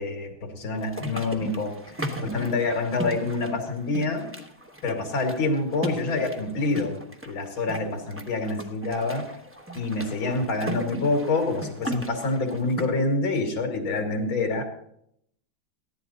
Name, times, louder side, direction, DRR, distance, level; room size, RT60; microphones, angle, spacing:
voice 1, 0.0-4.3 4.8-7.0 7.2-9.3 9.8-14.7, left 3 dB, 80° left, 4 dB, 2.7 m, -27 dB
sound 1, 0.7-12.8, right 1 dB, 10° right, 0.7 m, -37 dB
15.0 x 11.0 x 4.1 m, 0.73 s
omnidirectional pair, 2.2 m